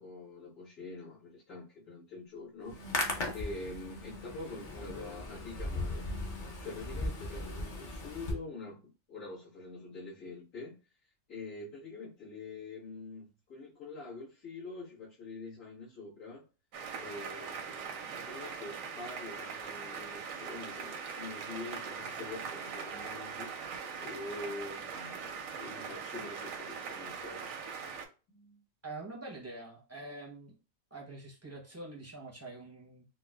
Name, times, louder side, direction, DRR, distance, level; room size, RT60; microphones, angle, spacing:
voice 1, 0.0-2.8 3.3-6.1 6.6-10.8 11.3-16.5 17.0-23.5 24.0-27.5 28.3-28.6, left 3 dB, 75° left, 1.7 m, -45 dB
Hands, 2.6-8.3, left 2 dB, 45° left, 0.7 m, -38 dB
sound 1, 16.7-28.1, right 6 dB, 85° right, 1.0 m, -41 dB
voice 2, 28.8-30.5 30.9-33.1, right 2 dB, 20° right, 0.5 m, -45 dB
4.0 x 2.1 x 2.3 m
omnidirectional pair, 1.4 m